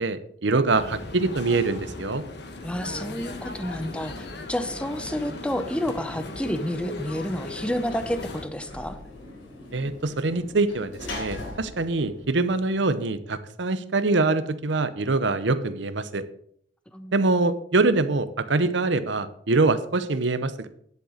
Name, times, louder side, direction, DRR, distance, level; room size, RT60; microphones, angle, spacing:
voice 1, 0.0-2.2 9.7-16.2 17.1-20.7, right 3 dB, 65° right, 12 dB, 0.8 m, -24 dB
sound 1, 0.7-8.4, left 2 dB, 60° left, 1.3 m, -37 dB
voice 2, 2.6-9.0 16.9-17.2, equal, 5° left, 9 dB, 0.7 m, -30 dB
Sliding door / Slam, 7.8-13.2, left 2 dB, 85° left, 3.9 m, -41 dB
11.0 x 6.6 x 5.0 m, 0.67 s
head